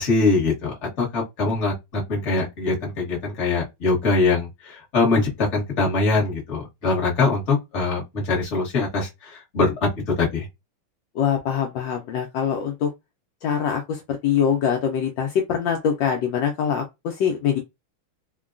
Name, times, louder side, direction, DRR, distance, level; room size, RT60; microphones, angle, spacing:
voice 1, 0.0-9.9 10.2-10.4, left 3 dB, 40° left, 1.4 m, -23 dB
voice 2, 11.1-12.9 13.4-17.6, left 8 dB, 75° left, 1.2 m, -23 dB
3.7 x 2.2 x 2.4 m
omnidirectional pair, 2.2 m